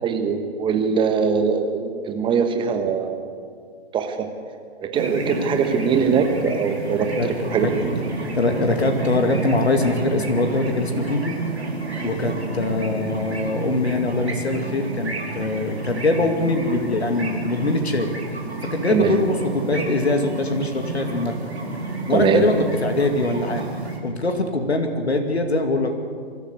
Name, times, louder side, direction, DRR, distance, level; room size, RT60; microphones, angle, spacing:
voice 1, 0.0-3.3 3.9-4.3 4.8-7.9 18.9-19.1 22.1-22.4, right 6 dB, 15° right, 6 dB, 1.4 m, -22 dB
sound 1, 4.9-24.0, right 3 dB, 85° right, 4.5 m, -30 dB
voice 2, 7.2-7.9 8.3-11.3 12.0-18.1 18.6-21.3 22.1-23.7 24.0-25.9, left 2 dB, 75° left, 5 dB, 2.4 m, -23 dB
24.0 x 14.0 x 8.2 m, 2.1 s
figure-of-eight pair, 125°, 32 cm